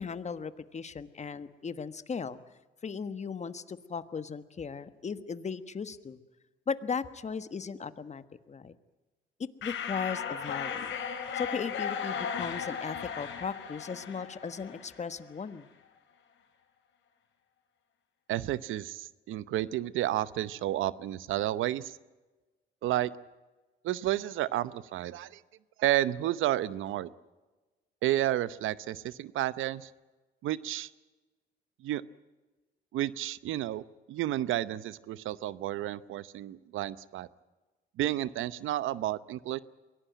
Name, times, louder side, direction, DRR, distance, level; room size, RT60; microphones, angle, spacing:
voice 1, 0.0-2.4 2.8-6.2 6.7-8.7 9.4-10.9 11.3-15.7, left 5 dB, 35° left, 12 dB, 1.4 m, -37 dB
sound 1, 9.6-15.1, left 7 dB, 75° left, 4.2 m, -36 dB
voice 2, 18.3-22.0 22.8-23.1 23.8-25.4 25.8-27.1 28.0-29.9 30.4-30.9 31.8-32.0 32.9-33.8 34.1-37.3 38.0-39.6, right 14 dB, 85° right, 17 dB, 0.8 m, -31 dB
23.5 x 17.5 x 9.1 m, 1.2 s
cardioid pair, 90°, 20 cm